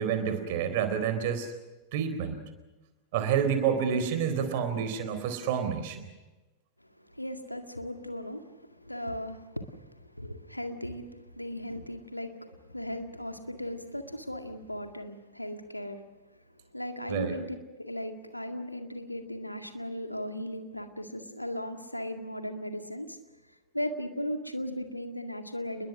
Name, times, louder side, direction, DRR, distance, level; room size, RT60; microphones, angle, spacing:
voice 1, 0.0-1.5 1.9-2.4 3.1-6.1 17.1-17.4, right 7 dB, 50° right, 9 dB, 4.0 m, -28 dB
voice 2, 6.8-16.0 16.7-17.5 17.8-23.2 23.7-25.9, equal, 90° left, 7 dB, 2.0 m, -37 dB
29.0 x 21.0 x 6.3 m, 1.1 s
figure-of-eight pair, 90°, 0 cm